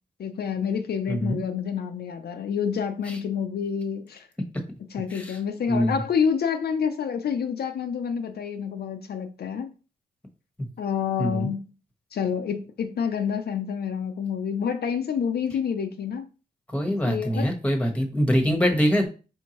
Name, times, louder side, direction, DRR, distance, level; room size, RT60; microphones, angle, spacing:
voice 1, 0.2-4.3 4.9-9.7 10.8-11.6 12.1-16.3 16.9-17.5, left 7 dB, 70° left, 0.5 m, -28 dB
voice 2, 1.1-1.4 3.1-3.2 5.1-5.4 5.7-6.0 11.2-11.5 16.7-19.1, equal, 10° left, 1.1 m, -24 dB
4.5 x 3.5 x 2.9 m
wide cardioid pair, 100°, 17 cm